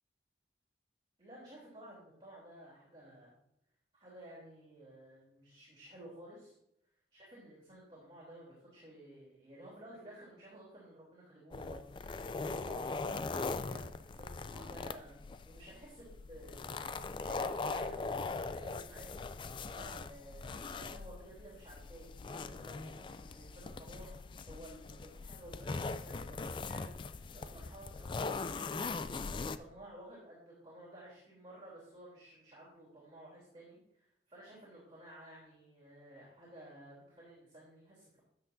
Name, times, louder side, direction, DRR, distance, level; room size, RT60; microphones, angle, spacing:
voice 1, 1.2-3.3 3.9-6.5 7.1-11.8 12.3-15.2 15.4-24.2 24.5-38.2, right 1 dB, 25° right, -6 dB, 3.2 m, -54 dB
sound 1, 11.5-29.6, left 4 dB, 25° left, 0.3 m, -40 dB
13.0 x 8.0 x 2.6 m, 0.76 s
head